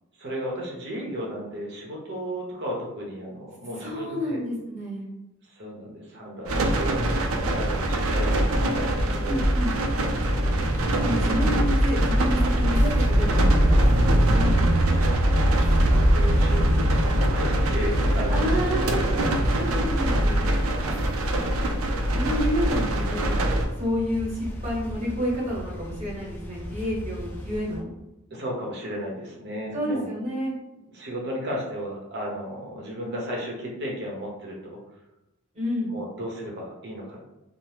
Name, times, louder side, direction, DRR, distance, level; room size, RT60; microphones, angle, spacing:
voice 1, 0.2-4.4 5.5-7.1 7.5-9.4 9.9-10.1 11.0-11.3 14.8-18.6 20.8-21.1 28.3-30.1 30.9-34.8 35.9-37.3, equal, 55° right, -2 dB, 0.8 m, -35 dB
voice 2, 3.8-5.1 8.4-8.8 9.2-9.8 11.0-14.5 18.3-19.0 19.5-20.5 22.1-23.5 23.8-27.9 29.7-30.5 35.5-35.9, equal, 35° right, -6 dB, 1.1 m, -29 dB
sound 1, 6.5-23.7, right 1 dB, 75° right, 0.4 m, -22 dB
sound 2, 9.9-27.8, equal, 10° left, 0.4 m, -39 dB
2.8 x 2.0 x 3.2 m, 0.94 s
head